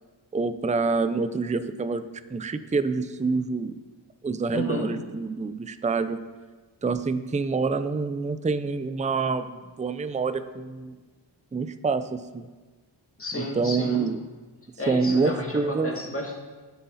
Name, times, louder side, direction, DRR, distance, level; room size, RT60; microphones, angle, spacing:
voice 1, 0.3-2.0 2.3-3.8 4.2-6.2 6.8-11.0 11.5-12.5 13.6-14.2 14.9-15.9, right 4 dB, 15° right, 11 dB, 0.5 m, -26 dB
voice 2, 4.5-4.9 13.2-14.0 14.8-16.4, left 1 dB, 25° left, -1 dB, 2.6 m, -32 dB
12.0 x 9.8 x 4.1 m, 1.3 s
wide cardioid pair, 100°, 48 cm